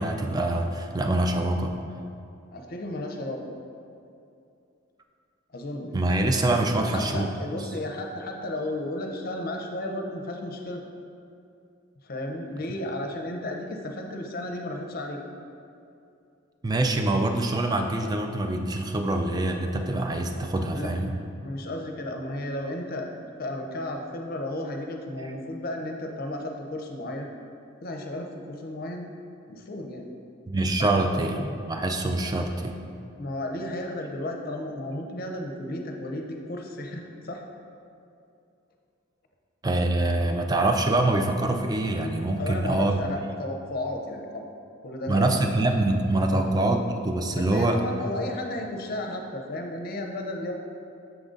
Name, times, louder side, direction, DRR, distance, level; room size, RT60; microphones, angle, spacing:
voice 1, 0.0-1.7 5.9-7.3 16.6-21.1 25.2-25.3 30.5-32.7 39.6-43.0 45.1-47.8, right 2 dB, 20° right, 5 dB, 0.3 m, -25 dB
voice 2, 2.5-3.4 5.5-5.9 6.8-10.8 12.0-15.2 20.7-23.1 23.4-27.3 27.8-29.1 29.5-30.1 33.2-37.4 42.4-44.5 44.8-45.4 46.3-46.5 47.4-50.5, left 1 dB, 45° left, 2 dB, 0.6 m, -33 dB
6.9 x 3.7 x 3.8 m, 2.6 s
head